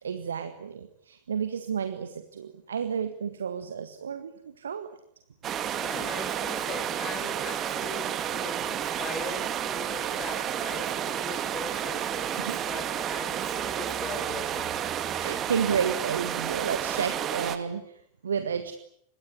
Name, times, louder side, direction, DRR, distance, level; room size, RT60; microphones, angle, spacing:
voice 1, 0.0-4.9 12.4-12.6 15.2-18.7, right 7 dB, 70° right, 9 dB, 1.8 m, -31 dB
sound 1, 5.4-17.6, right 10 dB, 30° right, 2.4 m, -31 dB
voice 2, 5.7-14.7 15.0-15.3, left 5 dB, 25° left, 9 dB, 6.8 m, -41 dB
26.0 x 21.5 x 9.9 m, 0.71 s
figure-of-eight pair, 90°, 0 cm